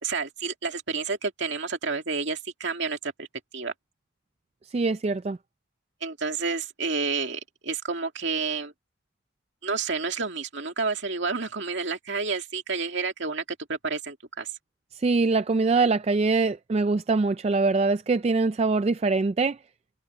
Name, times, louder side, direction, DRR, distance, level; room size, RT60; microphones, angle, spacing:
voice 1, 0.0-3.3 3.5-3.7 6.0-8.7 9.6-13.4 13.7-14.5, right 4 dB, 55° right, 2.5 m, -30 dB
voice 2, 4.7-5.4 14.9-19.6, right 3 dB, 30° right, 0.3 m, -23 dB
head